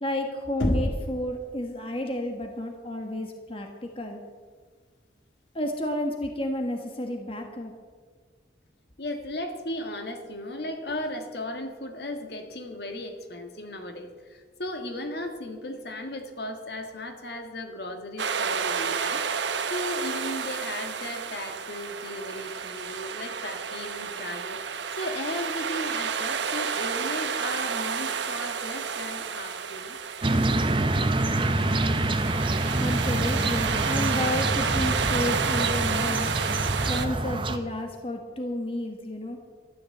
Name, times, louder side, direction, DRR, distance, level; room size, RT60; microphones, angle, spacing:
voice 1, 0.0-4.2 5.5-7.7 32.8-36.3 36.9-39.4, left 1 dB, 30° left, 3 dB, 1.4 m, -31 dB
Knock, 0.6-1.2, equal, 90° left, 2.6 m, -26 dB
voice 2, 9.0-30.0, left 1 dB, 60° left, 5 dB, 1.8 m, -36 dB
sound 1, 18.2-37.1, right 6 dB, 75° right, 1.0 m, -31 dB
sound 2, 30.2-37.6, right 2 dB, 25° right, 0.9 m, -26 dB
13.0 x 11.5 x 7.9 m, 1.5 s
head